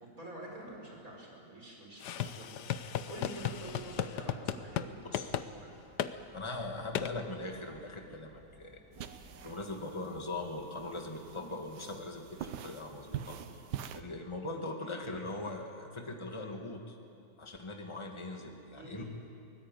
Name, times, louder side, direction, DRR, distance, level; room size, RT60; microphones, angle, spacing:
voice 1, 0.0-5.2 5.5-5.8 18.8-19.0, right 1 dB, 55° right, 0 dB, 5.4 m, -47 dB
sound 1, 2.0-4.9 5.1-5.5 6.0-6.1 6.9-7.1, left 10 dB, 80° left, 1.4 m, -35 dB
sound 2, 2.7-9.8, right 1 dB, 5° right, 2.1 m, -59 dB
voice 2, 6.3-8.8 9.4-13.6 13.9-17.0 17.4-19.0, left 2 dB, 15° left, 2 dB, 2.0 m, -41 dB
sound 3, 8.9-14.0, right 9 dB, 85° right, 1.5 m, -45 dB
24.0 x 18.0 x 9.1 m, 2.5 s
omnidirectional pair, 1.8 m